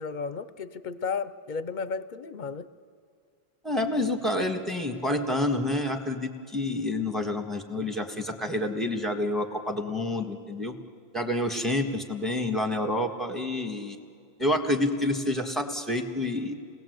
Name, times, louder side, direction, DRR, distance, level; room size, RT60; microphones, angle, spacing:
voice 1, 0.0-2.7, left 5 dB, 50° left, 14 dB, 0.8 m, -33 dB
voice 2, 3.6-10.7 11.1-14.0 14.4-16.5, left 1 dB, ahead, 5 dB, 1.6 m, -28 dB
28.0 x 19.5 x 8.1 m, 2.2 s
omnidirectional pair, 1.1 m